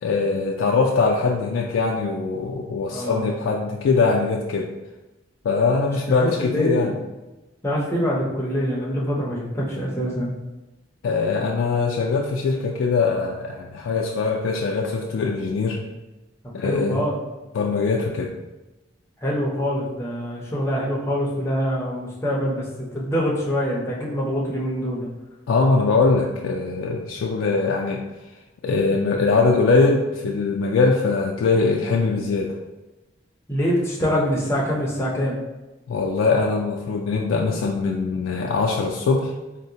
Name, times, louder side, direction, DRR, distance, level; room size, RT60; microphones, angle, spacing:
voice 1, 0.0-4.7 5.4-6.9 11.0-15.8 16.5-17.1 17.5-18.3 25.5-28.0 28.6-32.6 35.9-39.3, left 4 dB, 85° left, 0 dB, 0.3 m, -22 dB
voice 2, 2.9-3.3 6.2-7.0 7.6-10.3 16.6-17.2 19.2-25.1 33.5-35.4, equal, 15° left, -4 dB, 0.6 m, -25 dB
3.7 x 2.1 x 2.7 m, 1.1 s
head